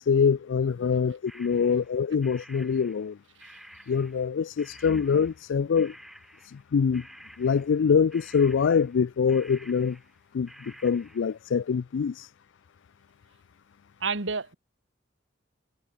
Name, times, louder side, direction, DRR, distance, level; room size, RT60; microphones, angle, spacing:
voice 1, 0.0-3.2 3.9-5.9 6.5-7.0 7.4-10.0 10.3-10.5 10.8-12.3, left 6 dB, 75° left, 0.4 m, -24 dB
sound 1, 1.3-4.3 4.6-5.5 5.7-6.7 6.9-11.4, equal, ahead, 2.7 m, -51 dB
voice 2, 14.0-14.6, right 4 dB, 75° right, 1.8 m, -30 dB
head